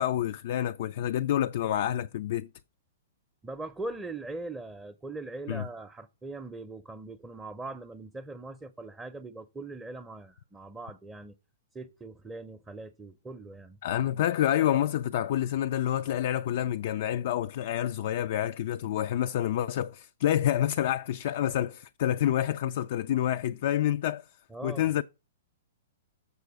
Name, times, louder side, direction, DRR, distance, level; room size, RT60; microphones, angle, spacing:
voice 1, 0.0-2.5 5.5-5.6 13.8-24.3 24.6-25.0, left 11 dB, 55° left, 0.3 m, -28 dB
voice 2, 3.4-11.3 11.7-13.8 24.5-24.9, right 2 dB, 10° right, 0.6 m, -41 dB
6.9 x 6.6 x 4.7 m
hypercardioid pair, 120°, 0 cm